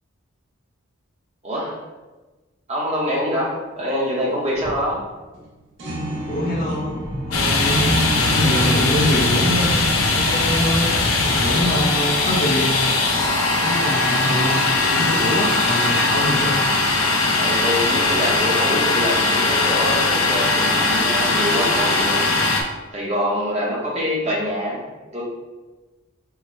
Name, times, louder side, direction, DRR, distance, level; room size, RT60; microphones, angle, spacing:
voice 1, 1.4-1.8 2.7-5.0 17.3-22.3 22.9-24.8 25.1-25.2, equal, 30° right, -4 dB, 0.9 m, -25 dB
sound 1, 4.5-4.9 5.3-5.4 5.8-10.3, right 1 dB, 65° right, 1.0 m, -28 dB
voice 2, 6.3-7.0 7.3-7.8 8.2-9.8 10.1-12.7 13.5-14.6 14.9-16.6, left 1 dB, 45° left, -2 dB, 0.8 m, -24 dB
Domestic sounds home sounds, 7.3-22.6, left 3 dB, 80° left, 0.7 m, -20 dB
4.7 x 2.1 x 4.3 m, 1.2 s
head